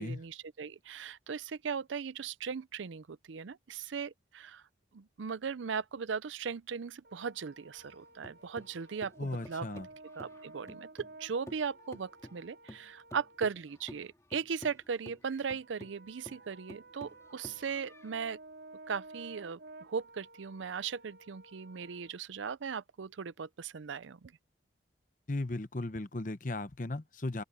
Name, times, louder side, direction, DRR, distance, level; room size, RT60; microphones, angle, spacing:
voice 1, 0.0-4.6 4.9-9.7 10.2-18.4 18.9-24.3, right 6 dB, 90° right, 0.5 m, -38 dB
Brass instrument, 7.0-13.5 15.6-22.2, right 2 dB, 65° right, 5.9 m, -54 dB
sound 1, 7.8-11.2 11.5-18.1, equal, 15° left, 2.5 m, -51 dB
voice 2, 9.2-9.9 25.3-27.4, left 2 dB, 45° left, 0.9 m, -36 dB
open air
head